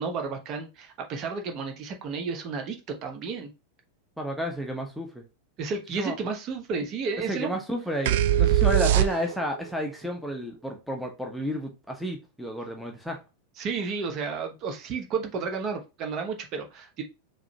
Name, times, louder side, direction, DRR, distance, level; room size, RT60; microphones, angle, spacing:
voice 1, 0.0-3.5 5.6-7.6 13.6-17.0, right 5 dB, 35° right, 1.0 m, -32 dB
voice 2, 4.2-5.2 6.0-6.1 7.3-13.2, equal, ahead, 0.9 m, -31 dB
sound 1, 8.1-9.6, right 12 dB, 55° right, 0.3 m, -21 dB
4.9 x 3.2 x 2.8 m
figure-of-eight pair, 90°, 0 cm